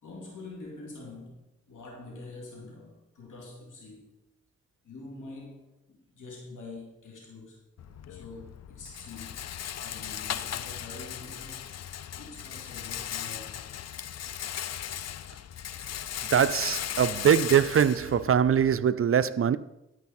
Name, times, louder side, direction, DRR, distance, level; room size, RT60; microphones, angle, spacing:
voice 1, 0.0-4.1 4.8-7.6 8.1-9.4 9.7-11.7 12.2-13.7, left 3 dB, 85° left, 2.6 m, -45 dB
Rattle, 7.8-18.8, left 10 dB, 60° left, 0.4 m, -37 dB
voice 2, 16.3-19.6, right 8 dB, 45° right, 0.4 m, -22 dB
12.5 x 4.8 x 4.2 m
cardioid pair, 55°, 30 cm